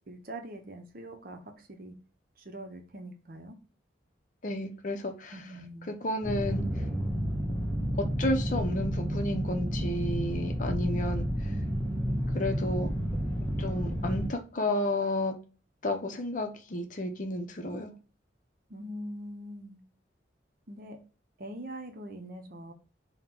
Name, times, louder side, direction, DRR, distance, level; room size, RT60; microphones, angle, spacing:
voice 1, 0.1-1.9 2.4-3.6 5.3-5.9 18.7-19.8 20.7-21.0 21.4-22.7, right 1 dB, 50° right, 0.7 m, -43 dB
voice 2, 4.4-5.3 5.9-6.6 8.0-11.6 12.3-12.9 13.6-15.3 15.8-17.9, left 1 dB, 45° left, 0.6 m, -32 dB
sound 1, 6.2-14.3, equal, 10° left, 1.0 m, -31 dB
3.8 x 2.1 x 4.4 m
head